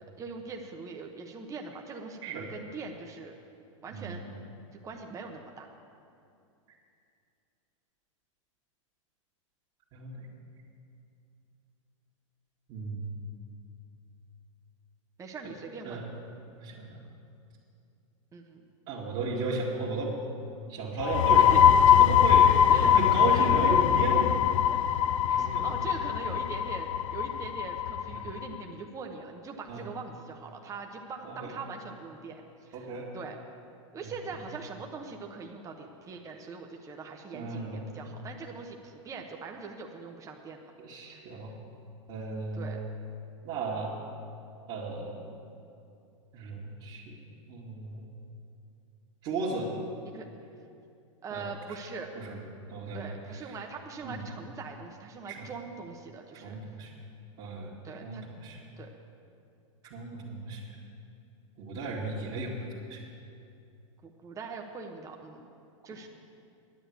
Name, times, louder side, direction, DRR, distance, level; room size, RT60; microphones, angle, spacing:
voice 1, 0.0-3.3 3.8-4.3 4.8-5.7 15.2-16.0 18.3-18.6 21.4-21.6 22.4-22.9 23.3-23.9 24.4-33.4 33.9-40.6 41.1-41.4 42.5-42.8 50.1-50.2 51.2-52.1 52.9-56.6 57.8-58.2 58.8-58.9 64.0-65.5 65.8-66.1, right 4 dB, 20° right, 2 dB, 1.0 m, -42 dB
voice 2, 3.9-4.3 9.9-10.3 12.7-13.3 15.4-15.5 15.8-16.1 16.6-17.0 18.9-20.2 20.7-21.5 21.9-22.5 22.8-24.5 25.3-25.7 28.2-28.3 29.7-29.8 31.2-31.5 32.7-33.1 37.3-37.9 40.8-41.5 42.1-42.8 43.4-43.9 44.7-45.2 46.3-47.2 47.5-48.1 49.2-49.7 51.3-51.8 52.2-52.4 52.7-53.1 53.4-53.6 54.0-54.2 55.3-55.5 56.4-56.9 57.4-58.6 59.8-60.7 61.6-63.1, right 3 dB, 40° right, -8 dB, 2.2 m, -35 dB
sound 1, 21.0-28.5, left 9 dB, 70° left, 0.5 m, -22 dB
10.5 x 8.9 x 8.3 m, 2.6 s
hypercardioid pair, 110°, 17 cm